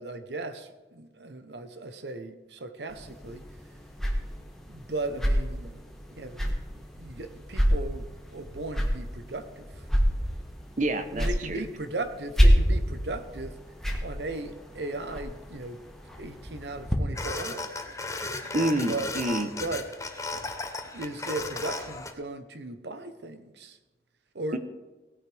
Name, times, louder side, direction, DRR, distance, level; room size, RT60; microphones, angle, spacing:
voice 1, 0.0-3.4 4.7-9.9 11.1-13.6 14.0-15.8 16.2-17.9 18.9-19.1 19.6-19.9 20.9-23.8 24.3-24.6, right 2 dB, 75° right, 9 dB, 1.0 m, -37 dB
sound 1, 2.9-17.0, equal, ahead, 1.4 m, -29 dB
voice 2, 10.8-11.6 18.5-19.5 24.5-24.6, right 1 dB, 45° right, 9 dB, 0.9 m, -28 dB
sound 2, 17.1-22.1, left 3 dB, 15° left, 0.9 m, -35 dB
17.5 x 9.8 x 3.4 m, 1.2 s
head